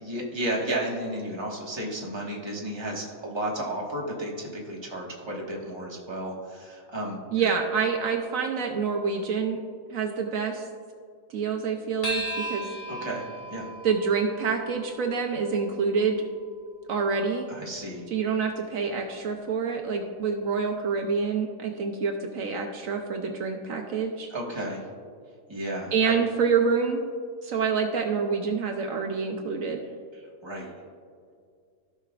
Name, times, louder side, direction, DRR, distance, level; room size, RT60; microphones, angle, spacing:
voice 1, 0.0-7.5 12.9-13.7 17.5-18.1 24.3-24.8 25.5-26.2 30.4-30.7, right 1 dB, 20° right, -3 dB, 1.3 m, -33 dB
voice 2, 7.3-9.6 9.9-10.7 11.3-12.7 13.8-16.3 16.9-17.5 18.1-24.3 25.9-27.1 27.4-29.8, right 5 dB, 70° right, 3 dB, 1.0 m, -27 dB
sound 1, 12.0-16.8, right 1 dB, 40° left, 1.6 m, -37 dB
15.0 x 5.8 x 2.4 m, 2.2 s
omnidirectional pair, 1.5 m